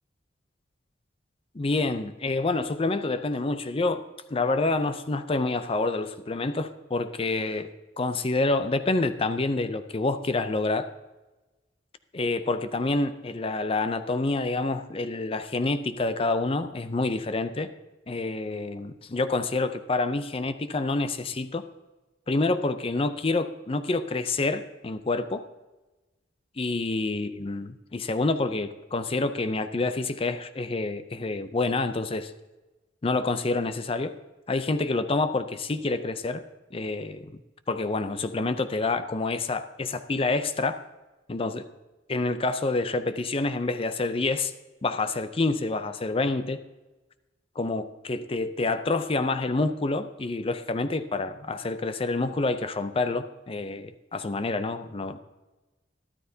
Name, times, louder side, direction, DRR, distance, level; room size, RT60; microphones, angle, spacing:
voice 1, 1.5-4.0 4.3-7.7 8.0-10.9 12.1-17.7 18.1-21.6 22.3-25.4 26.6-32.3 33.0-34.1 34.5-36.4 36.7-37.4 37.7-40.8 41.3-41.6 42.1-44.5 44.8-46.6 47.6-55.2, left 3 dB, 30° left, 11 dB, 0.5 m, -27 dB
13.0 x 12.5 x 2.8 m, 1.1 s
head